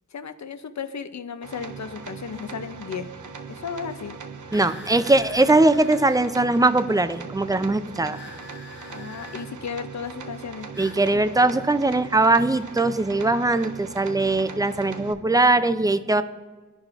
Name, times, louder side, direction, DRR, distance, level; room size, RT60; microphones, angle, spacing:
voice 1, 0.1-3.1 3.5-4.2 8.9-10.7, left 6 dB, 55° left, 11 dB, 0.6 m, -34 dB
sound 1, 1.4-15.1, right 5 dB, 65° right, 0.7 m, -40 dB
sound 2, 4.5-6.2 8.1-9.5 10.7-11.0, left 3 dB, 35° left, 1.5 m, -44 dB
voice 2, 4.5-8.2 10.8-16.2, right 2 dB, 10° right, 11 dB, 0.4 m, -20 dB
13.5 x 4.9 x 2.5 m, 1.3 s
wide cardioid pair, 60°, 33 cm